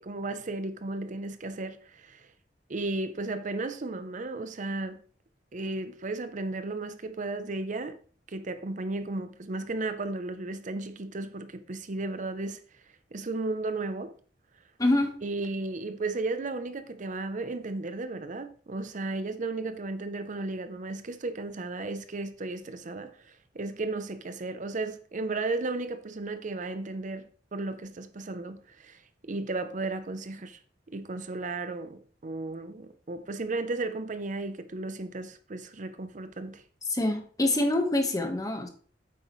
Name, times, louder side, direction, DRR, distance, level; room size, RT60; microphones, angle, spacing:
voice 1, 0.0-2.3 2.7-5.0 5.5-8.0 8.3-12.6 13.1-14.1 15.2-30.6 30.9-36.6, right 2 dB, 45° right, 0.6 m, -34 dB
voice 2, 14.8-15.1 36.9-38.7, left 1 dB, 20° left, 1.3 m, -25 dB
9.3 x 7.9 x 3.1 m
head